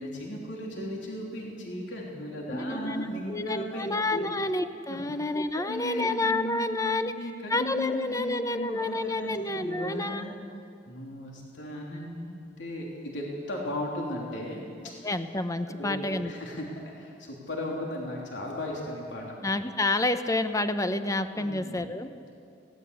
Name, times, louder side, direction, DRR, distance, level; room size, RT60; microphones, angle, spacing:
voice 1, 0.0-4.2 4.9-5.0 5.5-10.3 10.8-14.6 15.7-19.2 21.3-21.8, left 1 dB, 75° left, -2 dB, 3.4 m, -36 dB
voice 2, 2.5-7.1 7.5-10.2 15.0-16.3 19.4-22.1, left 2 dB, 20° left, 10 dB, 0.8 m, -29 dB
20.5 x 17.5 x 8.2 m, 2.5 s
head